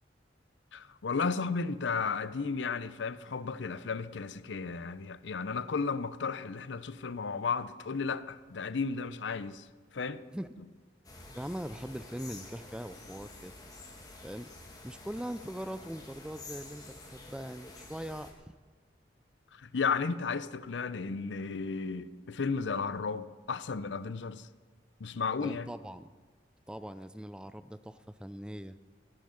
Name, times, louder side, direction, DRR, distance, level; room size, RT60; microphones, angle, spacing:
voice 1, 0.7-9.7 9.9-10.2 19.5-24.5 25.0-25.7, left 5 dB, 70° left, 0.6 m, -34 dB
sound 1, 11.0-18.3, left 2 dB, 20° left, 2.1 m, -49 dB
voice 2, 11.3-13.5 14.2-14.5 14.8-18.5 25.4-26.1 26.7-28.8, equal, 5° right, 0.4 m, -41 dB
16.5 x 10.5 x 6.5 m
head